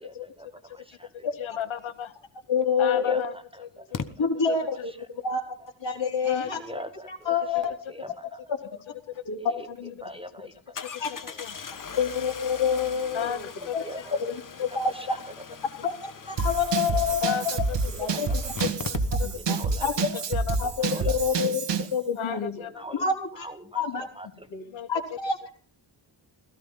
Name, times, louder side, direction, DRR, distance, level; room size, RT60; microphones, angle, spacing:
voice 1, 0.0-0.5 0.7-1.1 2.9-3.9 6.5-7.4 7.6-8.4 9.4-9.7 10.0-10.8 11.3-11.4 13.1-14.2 14.8-15.2 16.9-17.1 18.1-18.3 18.6-18.7 19.3-19.9 20.8-21.9 22.3-24.5, equal, 10° right, 9 dB, 1.4 m, -43 dB
voice 2, 1.4-2.1 2.8-4.0 4.5-4.6 6.2-6.8 9.1-9.6 10.7-11.5 13.1-13.8 15.8-15.9 17.2-18.2 19.2-19.4 20.0-21.1 22.1-22.8 24.7-24.9, left 9 dB, 80° left, 13 dB, 1.5 m, -35 dB
Engine starting, 2.4-2.5 3.9-4.1 9.1-9.2 9.6-9.7 10.8-19.6 19.8-19.9 20.1-20.2, left 6 dB, 40° left, 1.4 m, -40 dB
voice 3, 2.5-3.2 4.2-4.9 5.2-5.5 5.8-6.6 7.1-7.7 8.5-8.6 9.3-9.4 9.7-9.9 11.0-11.1 12.0-13.5 13.7-13.8 14.2-14.3 14.6-15.1 15.8-17.5 18.0-18.3 19.2-20.2 20.6-22.5 22.9-23.5 23.8-24.1 24.5-24.6 24.9-25.6, left 6 dB, 65° left, 3 dB, 3.6 m, -27 dB
Drum kit / Drum, 16.4-22.0, right 4 dB, 60° right, 1.7 m, -28 dB
17.0 x 15.0 x 5.6 m, 0.42 s
wide cardioid pair, 140°, 47 cm